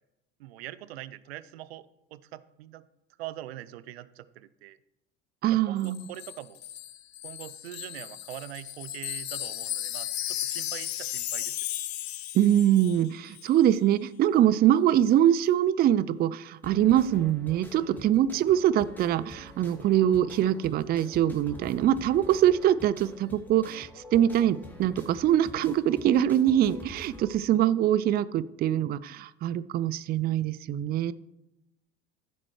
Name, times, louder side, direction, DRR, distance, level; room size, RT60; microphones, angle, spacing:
voice 1, 0.4-2.8 3.2-4.8 5.4-6.6 7.2-11.5 17.7-18.1, right 14 dB, 75° right, 17 dB, 0.6 m, -43 dB
voice 2, 5.4-6.0 12.3-31.1, right 11 dB, 30° right, 18 dB, 0.4 m, -23 dB
Wind chime, 5.8-13.1 13.3-13.5, left 12 dB, 85° left, 0.6 m, -35 dB
sound 1, 16.6-27.3, left 2 dB, 5° left, 2.4 m, -47 dB
14.0 x 7.5 x 3.2 m, 0.91 s
hypercardioid pair, 75°, 31 cm